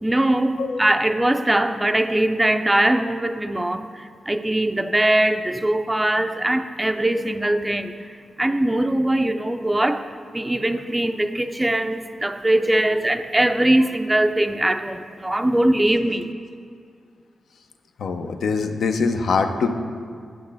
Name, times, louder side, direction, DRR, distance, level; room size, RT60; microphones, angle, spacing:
voice 1, 0.0-10.1 10.3-16.3, right 1 dB, 15° right, 8 dB, 0.3 m, -21 dB
voice 2, 18.0-19.7, left 4 dB, 80° left, 6 dB, 0.6 m, -23 dB
8.6 x 7.8 x 3.4 m, 2.3 s
cardioid pair, 85°, 0 cm